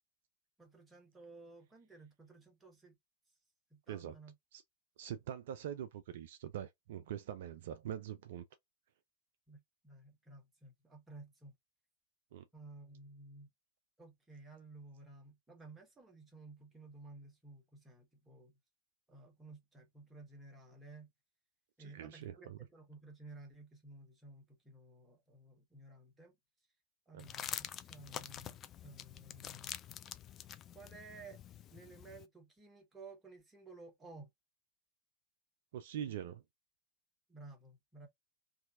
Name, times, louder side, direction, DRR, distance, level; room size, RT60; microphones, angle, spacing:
voice 1, 0.6-2.9 3.7-4.3 9.5-11.5 12.5-13.5 14.0-18.5 19.1-21.1 21.8-26.3 27.1-29.8 30.7-31.4 31.7-34.3 37.3-38.1, right 3 dB, 10° right, 1.2 m, -55 dB
voice 2, 5.0-8.5 12.3-12.4 21.8-22.6 27.1-27.2 35.7-36.4, right 10 dB, 55° right, 0.3 m, -43 dB
sound 1, 27.2-32.2, left 10 dB, 30° left, 0.3 m, -46 dB
2.8 x 2.6 x 2.4 m
figure-of-eight pair, 90°, 0 cm